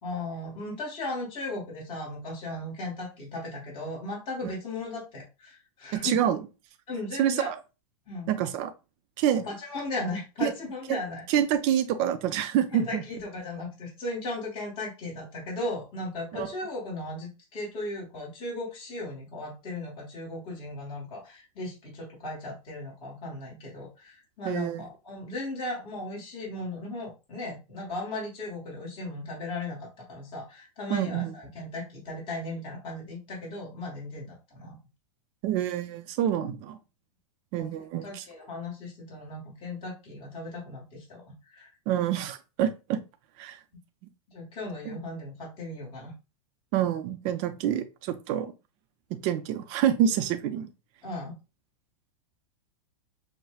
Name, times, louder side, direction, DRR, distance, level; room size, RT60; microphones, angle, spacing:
voice 1, 0.0-6.2 6.9-7.5 8.1-8.3 9.4-11.2 12.7-34.8 36.3-36.4 37.6-37.7 38.0-41.7 44.3-46.1 51.0-51.3, left 2 dB, 30° left, -4 dB, 1.5 m, -37 dB
voice 2, 5.9-6.4 7.2-7.6 8.3-8.7 9.2-9.4 10.4-10.5 10.9-11.0 11.3-13.0 16.3-16.5 24.4-24.8 30.9-31.3 35.4-36.8 37.5-38.2 41.9-43.0 43.4-43.6 44.9-45.0 46.7-48.5 49.2-50.7, right 10 dB, 40° right, 8 dB, 0.6 m, -27 dB
5.6 x 2.1 x 2.3 m, 0.29 s
supercardioid pair, 140°, 18 cm